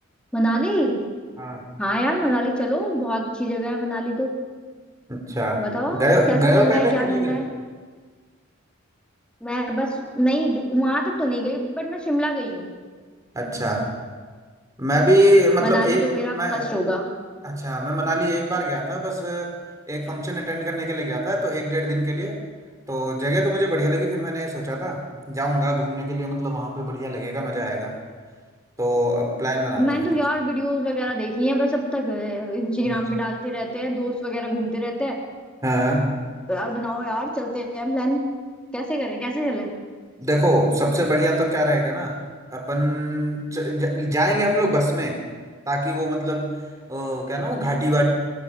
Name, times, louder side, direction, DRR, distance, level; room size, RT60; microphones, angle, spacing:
voice 1, 0.3-1.0 1.8-4.3 5.6-7.5 9.4-12.7 15.6-17.1 20.0-20.2 29.8-35.2 36.5-38.2 38.7-39.7, equal, 5° left, -1 dB, 3.5 m, -25 dB
voice 2, 5.1-5.7 5.9-7.5 13.3-13.9 14.8-16.7 17.4-19.5 19.9-22.4 22.9-28.0 28.8-30.1 32.9-33.0 35.6-36.1 40.2-42.2 42.5-45.2 45.7-46.6 46.9-48.1, equal, 15° right, 2 dB, 4.0 m, -23 dB
25.5 x 18.0 x 7.7 m, 1.5 s
head